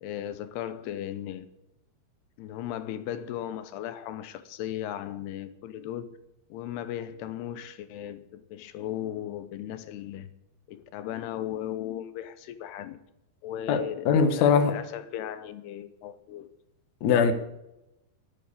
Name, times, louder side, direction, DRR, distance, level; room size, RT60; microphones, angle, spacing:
voice 1, 0.0-1.5 2.4-6.2 6.5-10.3 10.7-13.0 13.4-14.1 14.4-16.5, left 11 dB, 80° left, 3.0 m, -36 dB
voice 2, 13.7-14.7 17.0-17.3, left 6 dB, 60° left, 2.2 m, -21 dB
14.5 x 10.5 x 8.6 m
omnidirectional pair, 4.7 m